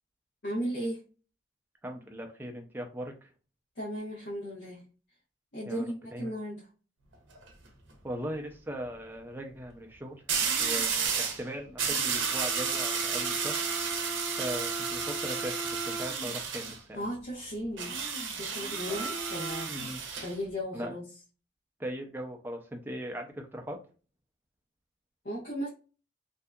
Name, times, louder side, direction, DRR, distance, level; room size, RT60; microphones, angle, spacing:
voice 1, 0.4-1.0 3.8-4.8 5.5-6.7 16.9-18.0 18.4-19.7 20.2-21.0 25.2-25.7, equal, 70° left, -7 dB, 0.9 m, -35 dB
voice 2, 1.8-3.3 5.7-5.9 6.1-6.3 8.0-10.2 10.6-13.6 14.4-17.0 18.9-19.0 19.7-20.0 20.7-20.9 21.8-23.8, equal, 10° right, 3 dB, 0.4 m, -39 dB
sound 1, 7.1-7.5 10.3-11.4 11.8-16.8 17.8-20.3, right 5 dB, 90° right, 0.6 m, -31 dB
2.7 x 2.3 x 2.2 m, 0.36 s
head